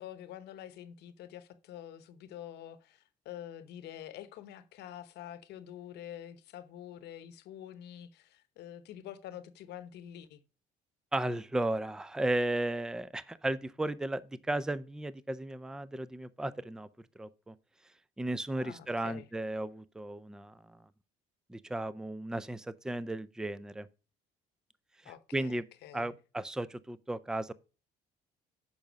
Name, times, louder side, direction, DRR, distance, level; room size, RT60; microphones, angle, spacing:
voice 1, 0.0-10.4 18.6-19.3 25.0-26.2, left 11 dB, 80° left, 0.9 m, -47 dB
voice 2, 11.1-16.9 17.2-17.5 18.2-20.8 21.5-23.9 25.3-25.6 25.9-27.5, right 1 dB, 5° right, 0.4 m, -35 dB
7.1 x 5.3 x 5.1 m
cardioid pair, 110°, 17 cm